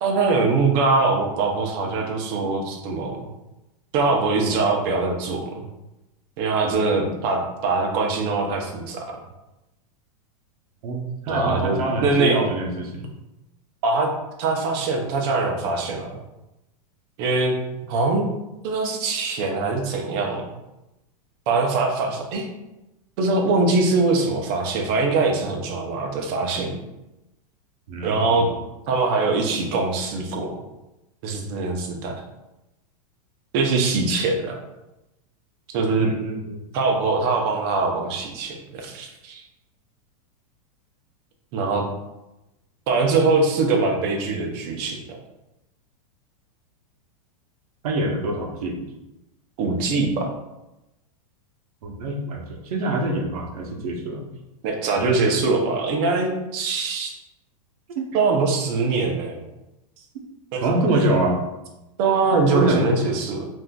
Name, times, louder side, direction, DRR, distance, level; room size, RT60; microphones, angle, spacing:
voice 1, 0.0-3.3 3.9-5.7 6.4-9.1 11.3-12.4 13.8-14.1 14.4-16.2 17.2-17.5 17.9-18.3 18.6-20.5 21.5-22.5 23.2-26.8 28.0-28.5 28.9-30.6 31.2-32.1 33.5-34.6 35.7-36.1 36.7-39.4 41.5-41.8 42.9-45.2 49.6-50.3 54.6-57.1 58.1-59.4 60.5-60.7 60.9-61.1 62.0-63.5, right 3 dB, 40° right, 2 dB, 0.6 m, -22 dB
voice 2, 10.8-13.1 27.9-28.5 36.0-36.6 47.8-48.8 51.8-54.2 57.9-58.1 60.6-61.4 62.3-62.9, right 2 dB, 75° right, 2 dB, 0.7 m, -25 dB
3.6 x 2.5 x 2.2 m, 0.96 s
supercardioid pair, 155°, 19 cm